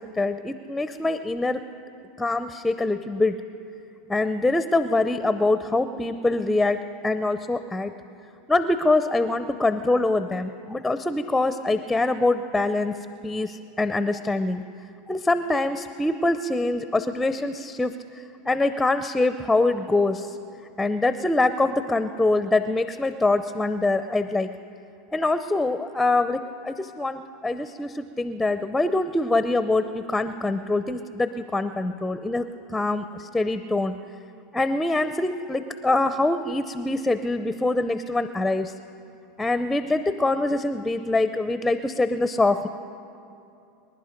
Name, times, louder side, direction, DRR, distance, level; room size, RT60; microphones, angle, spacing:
voice 1, 0.0-1.6 2.2-3.4 4.1-7.9 8.5-13.0 13.2-14.6 15.1-20.4 20.8-24.5 25.1-34.0 34.5-38.7 39.4-42.7, left 2 dB, 5° left, 10 dB, 0.6 m, -24 dB
25.0 x 11.0 x 5.2 m, 2.7 s
hypercardioid pair, 110°, 0 cm